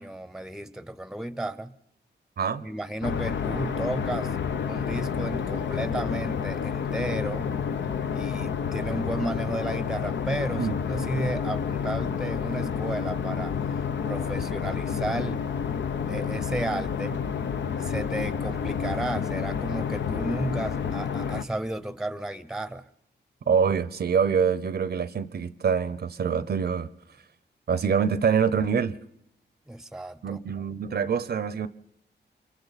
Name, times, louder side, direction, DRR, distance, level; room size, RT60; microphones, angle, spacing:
voice 1, 0.0-1.7 2.6-4.4 4.6-7.5 8.1-15.5 16.1-17.2 17.8-22.9 29.7-30.4, right 1 dB, 5° right, 0.7 m, -33 dB
sound 1, 3.0-21.4, left 7 dB, 80° left, 0.8 m, -29 dB
voice 2, 23.5-26.9 27.7-29.0 30.2-31.7, right 6 dB, 60° right, 0.7 m, -25 dB
29.0 x 24.0 x 4.1 m
cardioid pair, 90°, 18 cm